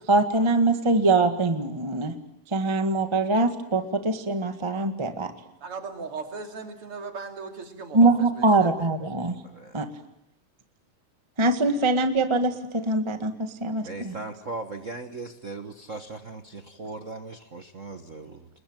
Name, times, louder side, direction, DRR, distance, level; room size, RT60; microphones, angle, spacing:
voice 1, 0.1-2.2 2.5-5.3 7.9-9.4 9.7-9.9 11.4-14.1, right 2 dB, 15° right, 7 dB, 1.0 m, -23 dB
voice 2, 5.6-8.9, right 4 dB, 45° right, 4 dB, 3.6 m, -38 dB
voice 3, 9.4-9.8 13.8-18.5, right 3 dB, 70° right, 6 dB, 0.7 m, -38 dB
29.5 x 21.5 x 9.0 m, 0.84 s
omnidirectional pair, 3.6 m